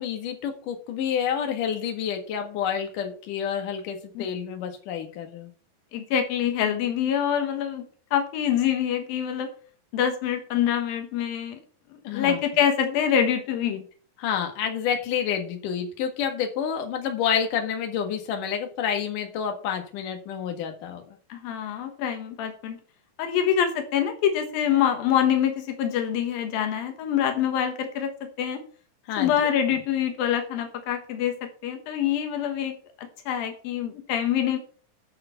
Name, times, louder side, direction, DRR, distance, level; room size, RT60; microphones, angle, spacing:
voice 1, 0.0-5.5 12.0-12.4 14.2-21.0 29.1-29.5, left 8 dB, 70° left, 5 dB, 3.1 m, -29 dB
voice 2, 5.9-7.9 8.1-9.5 9.9-11.6 11.9-13.8 21.3-22.8 23.2-28.1 28.4-28.6 29.2-34.6, left 9 dB, 85° left, 6 dB, 3.1 m, -25 dB
11.0 x 6.8 x 5.6 m, 0.42 s
omnidirectional pair, 4.1 m